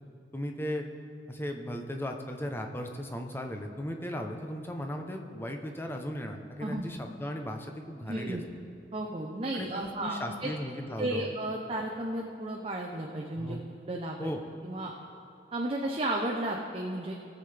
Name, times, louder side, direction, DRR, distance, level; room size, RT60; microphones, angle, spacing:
voice 1, 0.3-0.8 1.3-8.4 9.5-11.3 13.4-13.6 14.2-14.4, equal, 10° left, 3 dB, 0.7 m, -36 dB
voice 2, 8.1-8.4 8.9-10.5 11.0-13.6 13.9-14.3 14.6-14.9 15.5-17.1, right 1 dB, 30° right, 0 dB, 0.7 m, -33 dB
18.0 x 7.4 x 3.4 m, 2.6 s
head